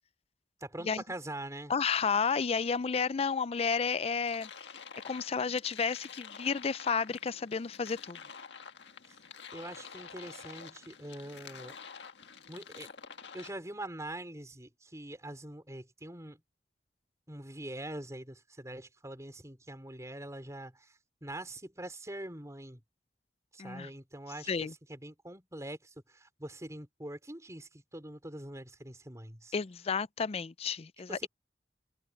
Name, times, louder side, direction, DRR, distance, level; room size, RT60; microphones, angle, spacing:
voice 1, 0.6-1.7 9.1-9.2 9.5-11.8 12.5-12.9 13.3-16.4 17.3-22.8 23.5-29.5 31.1-31.3, right 1 dB, 20° right, 4.7 m, -44 dB
voice 2, 1.7-4.5 5.0-8.2 23.6-23.9 24.5-24.7 29.5-31.3, left 5 dB, 35° left, 0.4 m, -31 dB
sound 1, 4.2-13.5, left 6 dB, 80° left, 1.7 m, -48 dB
head